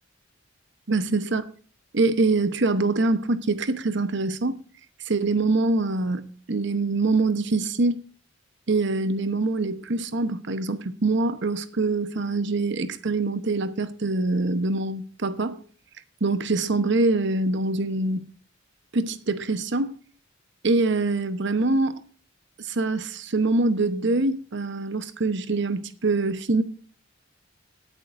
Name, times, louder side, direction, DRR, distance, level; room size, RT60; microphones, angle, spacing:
voice 1, 0.9-1.4 1.9-4.6 5.0-8.0 8.7-15.6 16.2-18.3 18.9-19.9 20.6-22.0 22.6-26.6, right 3 dB, 65° right, 1.0 m, -24 dB
18.5 x 9.0 x 2.6 m
head